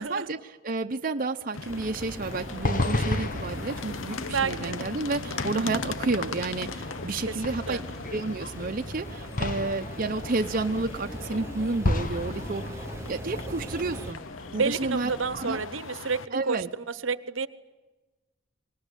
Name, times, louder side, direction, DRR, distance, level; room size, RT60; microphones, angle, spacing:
voice 1, 0.0-7.8 8.1-12.8 13.1-14.2 14.5-15.6 16.3-16.7, right 3 dB, 45° right, 5 dB, 0.8 m, -31 dB
sound 1, 1.5-16.3, left 4 dB, 85° left, 0.9 m, -40 dB
sound 2, 1.7-14.1, right 1 dB, 15° right, 0.9 m, -42 dB
sound 3, 2.2-15.7, left 2 dB, 45° left, 1.4 m, -34 dB
voice 2, 4.3-4.8 7.3-7.8 14.5-17.5, right 5 dB, 80° right, 15 dB, 1.1 m, -30 dB
24.0 x 20.5 x 9.9 m, 1.2 s
head